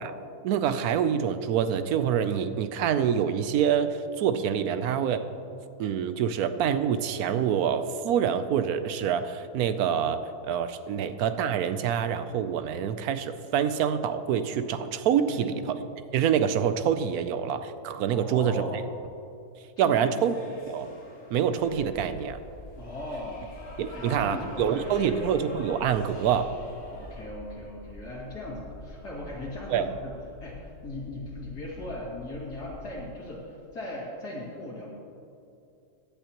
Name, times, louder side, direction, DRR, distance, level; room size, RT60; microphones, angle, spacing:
voice 1, 0.4-5.3 5.8-15.5 16.1-18.8 19.8-20.4 20.7-20.9 21.3-22.4 23.8-26.5 29.7-29.9, right 8 dB, 75° right, 11 dB, 1.0 m, -26 dB
voice 2, 15.2-15.7 18.1-18.8 19.8-20.3 22.8-23.5 23.9-25.2 26.9-30.1 30.4-34.9, left 1 dB, 85° left, -7 dB, 2.8 m, -38 dB
sound 1, 19.9-27.2, left 1 dB, 55° left, 2.1 m, -45 dB
sound 2, 22.0-33.0, left 1 dB, 10° right, 2.8 m, -47 dB
16.5 x 10.5 x 2.9 m, 2.6 s
omnidirectional pair, 1.7 m